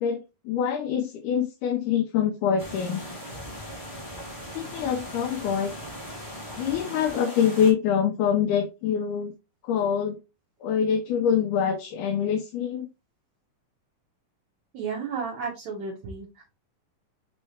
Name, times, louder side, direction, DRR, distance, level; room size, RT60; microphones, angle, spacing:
voice 1, 0.0-3.0 4.6-5.7 6.6-9.3 9.6-10.2 10.6-12.9, left 8 dB, 80° left, 2.1 m, -25 dB
sound 1, 2.6-7.7, equal, 45° left, 0.8 m, -39 dB
voice 2, 14.7-16.5, right 5 dB, 65° right, 2.1 m, -33 dB
5.5 x 2.8 x 3.1 m
omnidirectional pair, 3.7 m